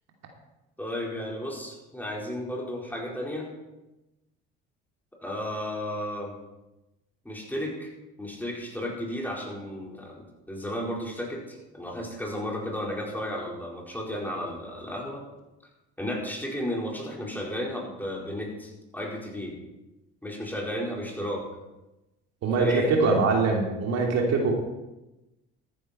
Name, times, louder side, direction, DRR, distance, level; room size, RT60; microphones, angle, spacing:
voice 1, 0.8-3.5 5.2-6.3 7.2-7.9 8.2-15.2 16.0-19.5 20.2-21.5 22.6-22.9, equal, 5° left, -3 dB, 4.7 m, -33 dB
voice 2, 22.4-24.5, right 3 dB, 60° right, 1 dB, 2.8 m, -23 dB
14.0 x 10.5 x 4.4 m, 0.99 s
supercardioid pair, 80°, 29 cm